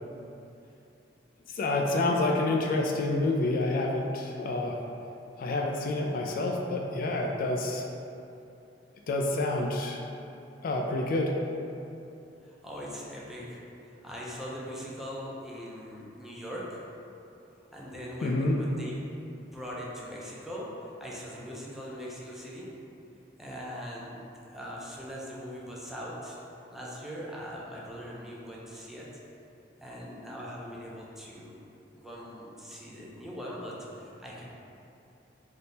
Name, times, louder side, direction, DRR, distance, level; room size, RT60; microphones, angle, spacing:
voice 1, 1.5-4.8 5.4-7.8 9.1-10.1 10.6-11.4 18.2-18.6, left 2 dB, 50° left, 0 dB, 0.3 m, -28 dB
voice 2, 12.4-16.8 17.7-18.9 19.5-22.7 23.4-26.4 26.7-29.1 29.8-31.6 31.9-34.4, equal, ahead, -5 dB, 0.5 m, -41 dB
3.5 x 2.8 x 4.0 m, 2.8 s
head